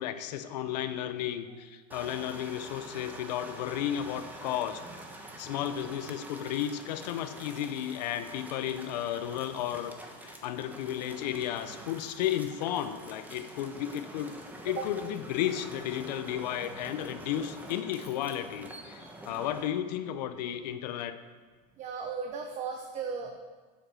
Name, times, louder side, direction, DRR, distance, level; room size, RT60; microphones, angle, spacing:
voice 1, 0.0-4.8 5.4-9.9 10.2-14.3 14.6-21.2, left 11 dB, 80° left, 10 dB, 0.9 m, -33 dB
sound 1, 1.9-19.7, right 1 dB, 10° right, 1.3 m, -46 dB
voice 2, 19.0-19.5 21.8-23.4, right 5 dB, 35° right, 3 dB, 1.1 m, -37 dB
8.9 x 7.9 x 6.4 m, 1.4 s
supercardioid pair, 130°, 21 cm